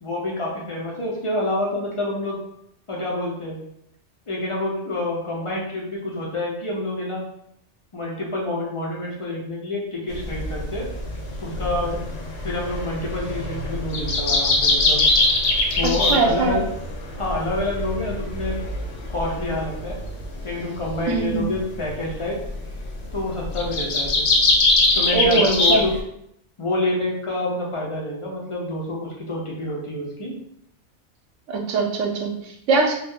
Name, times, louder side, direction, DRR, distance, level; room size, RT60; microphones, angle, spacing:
voice 1, 0.0-2.4 2.9-3.6 4.3-7.2 7.9-10.9 11.4-12.0 12.4-15.0 15.8-16.6 17.2-18.6 19.1-20.0 20.4-22.4 23.1-24.3 24.9-25.9 26.6-30.3, left 2 dB, 40° left, -3 dB, 0.4 m, -27 dB
sound 1, 10.1-26.0, left 2 dB, 65° left, 0.8 m, -23 dB
voice 2, 15.8-16.6 21.1-21.5 25.1-25.9 31.5-32.9, right 3 dB, 85° right, 3 dB, 0.9 m, -22 dB
2.6 x 2.3 x 3.6 m, 0.74 s
omnidirectional pair, 1.2 m